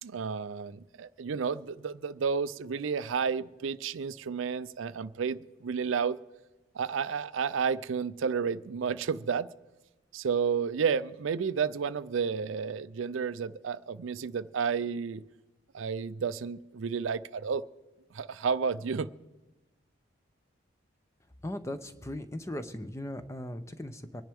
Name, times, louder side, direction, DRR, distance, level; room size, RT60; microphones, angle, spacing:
voice 1, 0.0-6.2 6.7-9.5 10.1-15.2 15.7-17.6 18.1-19.1, right 6 dB, 75° right, 0.4 m, -31 dB
voice 2, 21.4-24.2, left 1 dB, 15° left, 0.6 m, -38 dB
24.5 x 10.5 x 3.5 m
head